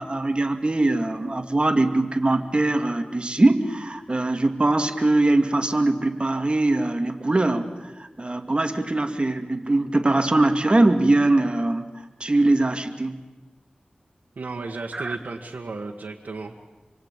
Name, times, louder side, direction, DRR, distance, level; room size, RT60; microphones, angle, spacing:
voice 1, 0.0-11.9 12.2-13.2 14.9-15.2, right 2 dB, 40° right, 6 dB, 2.4 m, -22 dB
voice 2, 14.4-16.6, right 3 dB, 90° right, -1 dB, 1.7 m, -34 dB
28.0 x 23.5 x 9.0 m, 1.2 s
wide cardioid pair, 55°, 3 cm